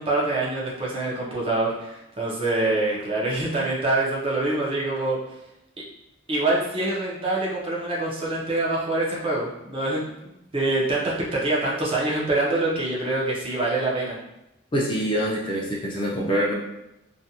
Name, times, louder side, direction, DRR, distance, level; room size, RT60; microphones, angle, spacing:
voice 1, 0.0-5.2 6.3-14.2, right 2 dB, 25° right, -4 dB, 0.5 m, -25 dB
voice 2, 14.7-16.5, equal, 25° left, -3 dB, 0.4 m, -25 dB
2.5 x 2.2 x 2.7 m, 0.90 s
head